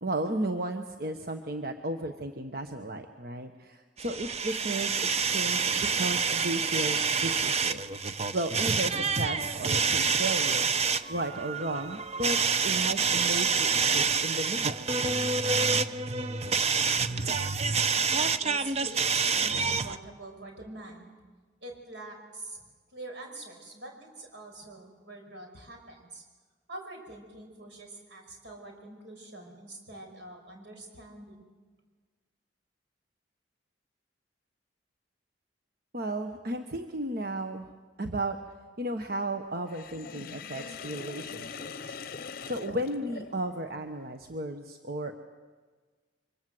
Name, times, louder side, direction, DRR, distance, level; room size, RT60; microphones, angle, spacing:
voice 1, 0.0-7.8 8.3-10.7 11.1-14.8 35.9-37.7 38.0-38.4 38.8-42.0 42.5-45.1, right 1 dB, 55° right, 6 dB, 1.2 m, -34 dB
sound 1, 4.0-20.0, right 5 dB, 35° right, 0.8 m, -27 dB
voice 2, 17.2-21.1 21.6-26.2 26.7-31.5, right 2 dB, 75° right, 2 dB, 5.7 m, -45 dB
Sink (filling or washing), 39.7-43.6, left 5 dB, 55° left, 0.7 m, -42 dB
25.5 x 24.5 x 7.8 m, 1.4 s
head